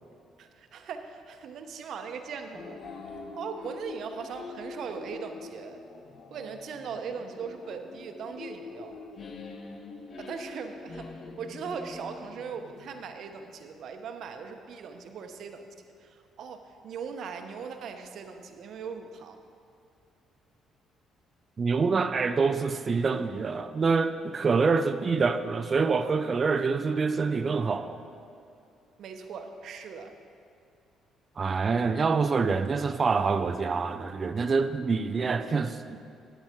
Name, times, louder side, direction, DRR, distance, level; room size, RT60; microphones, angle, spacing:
voice 1, 0.4-2.8 3.4-5.8 6.3-9.0 10.2-11.1 11.4-15.7 16.0-19.4 29.0-30.1, right 6 dB, 65° right, 6 dB, 0.9 m, -39 dB
sound 1, 2.5-13.1, left 3 dB, 50° left, 1.0 m, -44 dB
voice 2, 21.6-28.0 31.4-36.0, right 4 dB, 40° right, 10 dB, 0.5 m, -26 dB
10.5 x 8.8 x 4.5 m, 2.6 s
cardioid pair, 85°, 0 cm